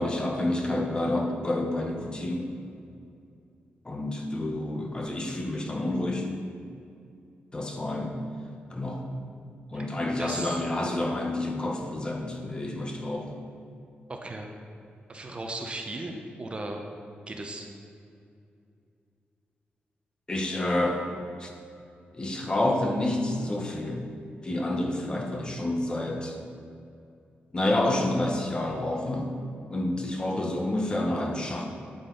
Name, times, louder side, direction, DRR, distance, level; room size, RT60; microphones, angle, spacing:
voice 1, 0.0-2.5 3.8-6.3 7.5-8.1 8.7-9.0 9.7-13.4 20.3-21.1 21.4-21.5 22.1-24.0 24.4-26.4 27.5-29.3 29.7-31.7, left 1 dB, 25° left, 2 dB, 1.0 m, -29 dB
voice 2, 10.2-10.6 14.1-14.5 15.1-16.8 17.3-17.7, right 2 dB, 30° right, 3 dB, 0.9 m, -36 dB
9.3 x 8.8 x 3.9 m, 2.5 s
wide cardioid pair, 140°, 4 cm